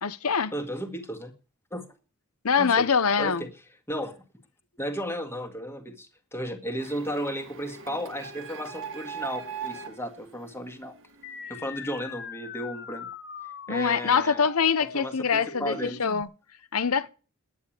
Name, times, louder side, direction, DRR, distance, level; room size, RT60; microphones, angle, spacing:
voice 1, 0.0-0.5 2.4-3.4 13.7-16.3 16.7-17.1, left 6 dB, 75° left, 0.9 m, -24 dB
voice 2, 0.5-1.3 1.7-1.8 2.6-2.9 3.2-3.5 3.9-4.2 4.8-10.9 11.5-13.1 13.7-14.5 14.9-16.0, equal, 10° left, 1.9 m, -34 dB
Printer, 6.8-11.4, right 6 dB, 60° right, 1.6 m, -40 dB
sound 1, 11.2-16.2, left 6 dB, 50° left, 1.1 m, -41 dB
11.0 x 9.6 x 8.8 m
head